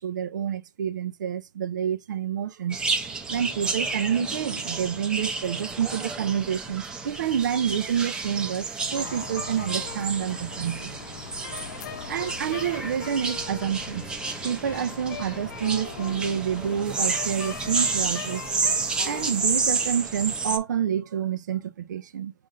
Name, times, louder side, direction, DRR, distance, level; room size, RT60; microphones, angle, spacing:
voice 1, 0.0-2.8 3.3-10.9 12.1-14.1 14.4-18.4 19.0-22.3, right 9 dB, 70° right, 0.6 m, -28 dB
sound 1, 2.7-20.6, right 4 dB, 10° right, 0.6 m, -31 dB
sound 2, 8.9-19.3, left 8 dB, 65° left, 0.7 m, -40 dB
5.4 x 2.6 x 3.7 m
hypercardioid pair, 155°, 10 cm